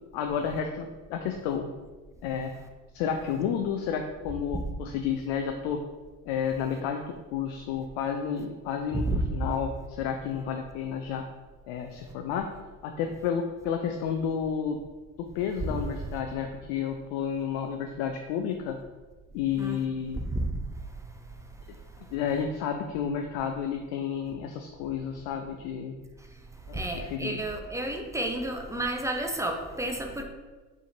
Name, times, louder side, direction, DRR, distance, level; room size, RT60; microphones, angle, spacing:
voice 1, 0.1-1.7 2.2-2.6 2.9-5.8 6.2-9.0 9.3-11.3 11.7-12.5 12.8-14.8 15.2-18.8 19.3-20.2 22.1-26.0 26.7-27.4, left 7 dB, 60° left, 5 dB, 0.5 m, -31 dB
voice 2, 20.2-20.5 26.7-30.2, right 1 dB, 5° right, 3 dB, 0.5 m, -31 dB
4.4 x 3.5 x 2.7 m, 1.3 s
figure-of-eight pair, 50°, 42 cm